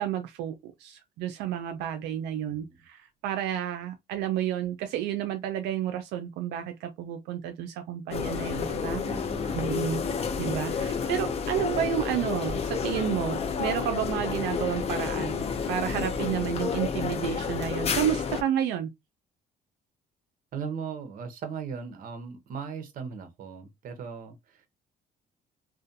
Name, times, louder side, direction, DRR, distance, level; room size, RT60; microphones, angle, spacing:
voice 1, 0.0-9.0 9.5-10.1 10.4-15.4 15.7-18.9, right 10 dB, 85° right, 0.4 m, -31 dB
sound 1, 8.1-18.4, left 6 dB, 40° left, 0.5 m, -30 dB
voice 2, 9.0-9.8 20.5-24.7, right 6 dB, 55° right, 0.7 m, -38 dB
2.4 x 2.1 x 2.6 m
cardioid pair, 110°, 17 cm